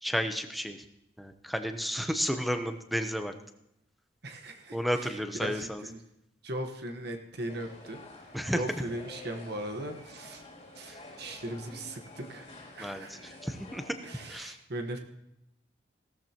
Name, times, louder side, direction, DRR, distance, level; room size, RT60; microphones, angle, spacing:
voice 1, 0.0-0.8 1.2-3.3 4.7-5.8 8.3-8.6 10.9-11.0 12.8-14.0 14.3-14.6, equal, ahead, 7 dB, 0.8 m, -32 dB
voice 2, 4.2-6.0 6.4-10.4 10.7-13.4 14.0-15.0, right 1 dB, 60° right, 4 dB, 1.3 m, -39 dB
sound 1, 7.5-14.3, left 2 dB, 35° left, 3.0 m, -50 dB
17.0 x 13.5 x 3.0 m, 0.82 s
head